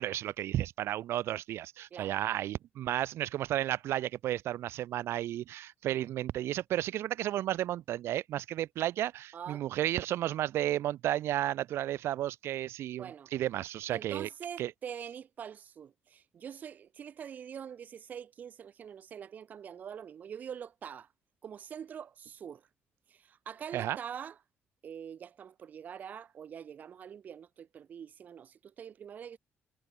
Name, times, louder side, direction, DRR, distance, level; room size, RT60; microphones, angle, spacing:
voice 1, 0.0-14.3 14.6-14.7 23.7-24.0, right 13 dB, 75° right, 1.0 m, -33 dB
voice 2, 9.3-9.9 12.9-13.3 13.9-21.1 21.4-22.7 23.1-24.4 24.8-29.4, right 8 dB, 40° right, 0.9 m, -44 dB
cardioid pair, 175°, 4 cm